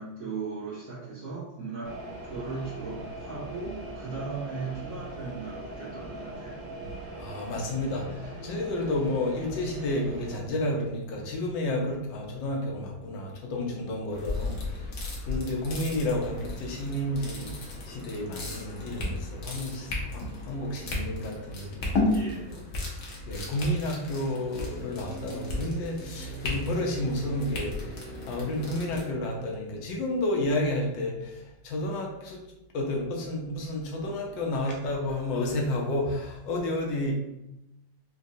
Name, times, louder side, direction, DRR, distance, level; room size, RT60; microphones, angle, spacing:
voice 1, 0.0-2.0 2.3-6.7 22.1-22.6, right 4 dB, 75° right, -14 dB, 2.1 m, -37 dB
sound 1, 1.8-10.4, right 2 dB, 55° right, 0.8 m, -41 dB
voice 2, 7.2-22.2 22.8-22.9 23.3-27.7 28.3-32.4 32.7-37.1, left 1 dB, 75° left, 0 dB, 1.4 m, -31 dB
sound 2, 14.1-29.0, left 2 dB, 60° left, 1.0 m, -34 dB
4.7 x 2.2 x 2.6 m, 0.88 s
omnidirectional pair, 2.1 m